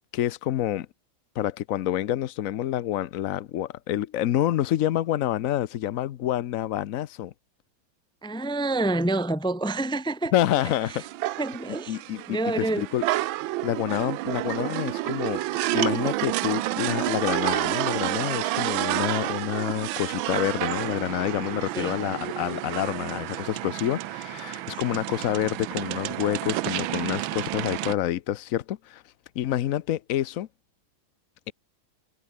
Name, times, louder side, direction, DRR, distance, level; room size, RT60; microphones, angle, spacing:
voice 1, 0.1-0.9 1.4-7.3 10.3-11.0 11.9-13.0 13.6-29.0 29.3-30.5, left 12 dB, 75° left, 0.7 m, -28 dB
voice 2, 8.2-10.3 11.4-12.0 12.3-12.9 21.7-22.0, right 2 dB, 5° left, 0.6 m, -27 dB
sound 1, 10.4-27.9, right 16 dB, 80° right, 1.4 m, -30 dB
omnidirectional pair, 2.3 m